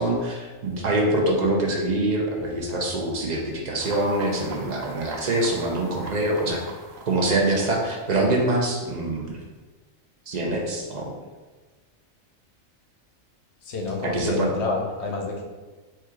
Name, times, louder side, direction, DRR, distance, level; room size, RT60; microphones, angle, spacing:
voice 1, 0.0-6.6 7.1-9.4 10.3-11.1 14.0-14.5, right 1 dB, 50° right, 0 dB, 0.5 m, -24 dB
sound 1, 3.8-8.9, right 3 dB, 75° right, 1.0 m, -42 dB
voice 2, 13.6-15.4, left 3 dB, 60° left, 1 dB, 0.9 m, -29 dB
4.3 x 2.3 x 4.6 m, 1.3 s
omnidirectional pair, 1.4 m